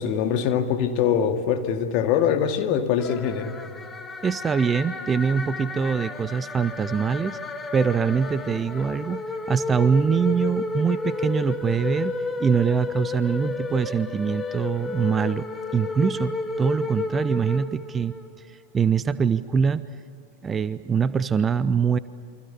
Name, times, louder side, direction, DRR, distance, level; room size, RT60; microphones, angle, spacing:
voice 1, 0.0-3.6, left 8 dB, 40° left, 6 dB, 2.2 m, -23 dB
sound 1, 3.0-18.3, left 3 dB, 15° left, 1.5 m, -32 dB
voice 2, 4.2-7.4 7.7-12.1 12.4-15.5 15.7-18.1 18.5-19.8 20.4-22.0, right 6 dB, 20° right, 15 dB, 0.7 m, -23 dB
29.0 x 24.5 x 6.9 m, 2.5 s
figure-of-eight pair, 90°, 0 cm